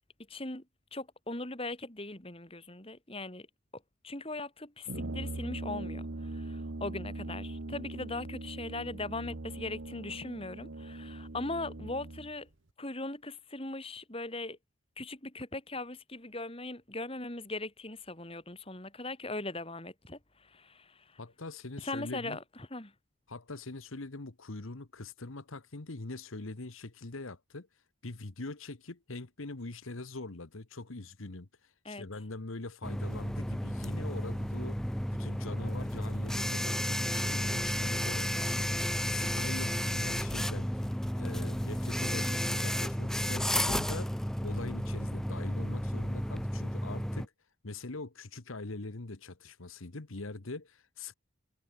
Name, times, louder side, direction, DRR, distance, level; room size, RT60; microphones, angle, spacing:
voice 1, 0.3-0.6 0.9-3.5 4.0-12.5 12.8-14.6 15.0-21.2 21.8-22.4 22.7-22.9 31.8-32.1, left 2 dB, 25° left, 3.0 m, -39 dB
Brass instrument, 4.9-12.3, right 2 dB, 65° right, 1.3 m, -41 dB
voice 2, 21.2-22.4 23.3-34.8 35.1-40.9 41.2-44.1 44.4-47.3 47.6-51.1, left 2 dB, 75° left, 1.3 m, -43 dB
sound 1, 32.8-47.3, equal, ahead, 0.9 m, -32 dB
head